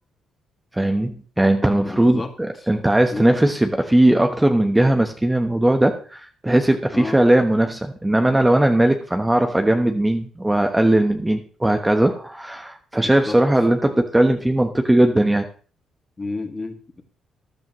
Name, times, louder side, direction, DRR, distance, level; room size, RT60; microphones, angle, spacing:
voice 1, 0.8-15.5, right 1 dB, 10° right, 5 dB, 1.1 m, -18 dB
voice 2, 1.8-2.7 3.1-3.4 6.9-7.2 13.0-13.4 16.2-17.0, left 3 dB, 25° left, 5 dB, 2.1 m, -32 dB
14.5 x 10.5 x 3.1 m, 0.41 s
cardioid pair, 90°, 0 cm